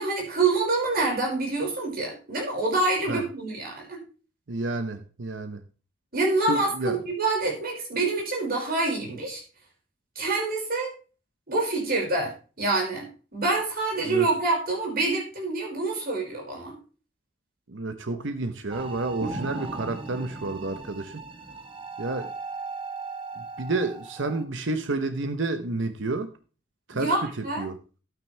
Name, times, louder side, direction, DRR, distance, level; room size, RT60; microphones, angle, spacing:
voice 1, 0.0-4.0 6.1-9.4 10.2-10.9 11.5-16.7 26.9-27.7, right 3 dB, 50° right, -1 dB, 5.4 m, -26 dB
voice 2, 4.5-5.6 6.5-7.0 14.0-14.3 17.7-21.2 22.0-22.3 23.4-26.3 26.9-27.1 27.6-27.8, right 2 dB, 70° right, 9 dB, 0.9 m, -30 dB
sound 1, 18.7-24.4, right 3 dB, 30° right, 1.2 m, -37 dB
12.0 x 9.1 x 3.3 m, 0.35 s
head